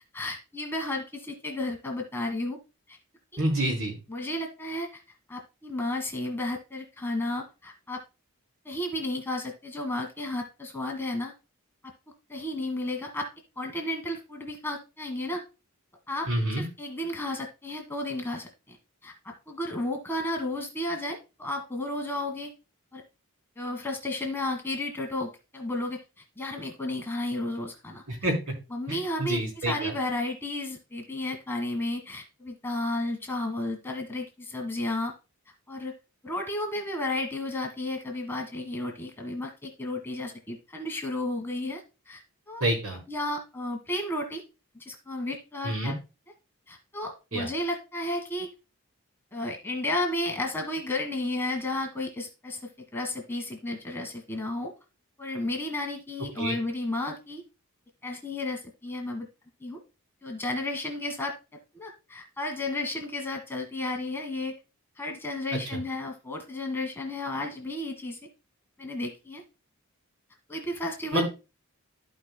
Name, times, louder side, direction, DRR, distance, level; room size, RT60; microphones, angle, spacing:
voice 1, 0.1-2.6 2.9-3.0 3.3-3.4 4.1-5.0 5.3-8.0 8.6-11.3 12.3-13.3 13.6-15.4 16.1-16.3 16.6-18.8 19.0-22.5 22.9-23.0 23.6-26.0 26.4-28.0 28.7-35.1 35.7-35.9 36.2-42.2 42.5-42.7 43.1-44.4 44.7-45.9 46.7-48.5 49.3-54.7 55.2-57.4 58.0-59.3 59.6-59.8 60.2-61.3 61.7-64.5 65.0-68.2 68.8-69.4 70.5-71.2, left 1 dB, 10° left, 1 dB, 1.4 m, -33 dB
voice 2, 3.4-4.0 16.3-16.6 28.1-28.3 28.9-29.9 42.6-43.0 45.6-45.9 47.3-47.5 56.4-56.6 71.1-71.3, right 1 dB, 75° right, 0 dB, 3.9 m, -28 dB
14.5 x 5.1 x 2.2 m, 0.30 s
head